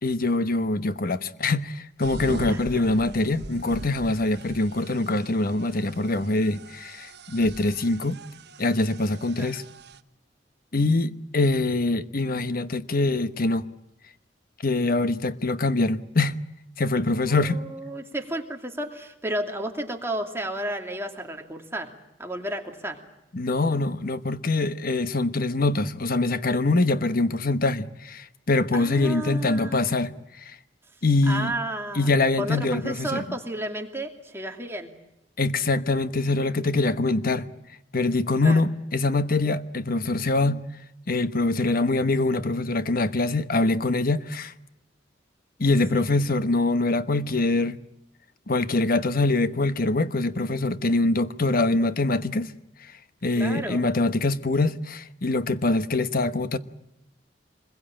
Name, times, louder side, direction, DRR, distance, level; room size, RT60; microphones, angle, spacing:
voice 1, 0.0-8.2 8.6-9.6 10.7-13.7 14.6-16.4 16.8-17.6 23.3-30.1 30.4-30.5 31.0-31.5 31.9-33.2 35.4-37.5 37.9-40.6 41.1-44.5 45.6-47.8 48.5-52.5 53.2-56.6, left 2 dB, 50° left, 1.1 m, -24 dB
sound 1, 2.0-10.0, right 2 dB, 65° right, 1.1 m, -40 dB
voice 2, 2.4-2.9 9.4-9.5 17.1-21.9 22.2-23.0 28.7-30.0 31.3-32.1 32.4-34.9 38.4-38.6 45.9-46.0 53.3-53.8, right 1 dB, 15° right, 2.7 m, -32 dB
26.5 x 21.5 x 8.8 m
head